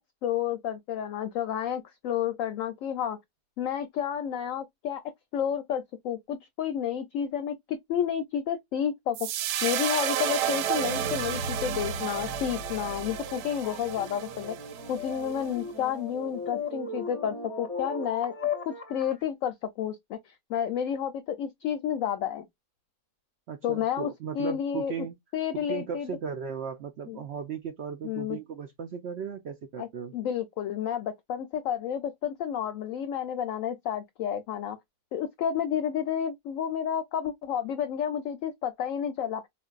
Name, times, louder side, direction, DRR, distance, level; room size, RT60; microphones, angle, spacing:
voice 1, 0.2-3.2 3.6-5.0 5.3-9.3 9.6-14.6 14.9-18.3 18.7-22.4 23.6-24.1 24.4-24.9 25.3-26.1 27.1-27.2 28.0-28.4 29.8-29.9 30.1-34.8 35.1-39.4, left 9 dB, 70° left, 0.8 m, -31 dB
sound 1, 9.1-15.5, right 9 dB, 90° right, 1.2 m, -31 dB
sound 2, 11.9-19.2, left 4 dB, 30° left, 0.7 m, -38 dB
voice 2, 23.5-25.2 25.5-30.1, right 6 dB, 75° right, 0.6 m, -36 dB
4.3 x 2.5 x 2.3 m
omnidirectional pair, 1.7 m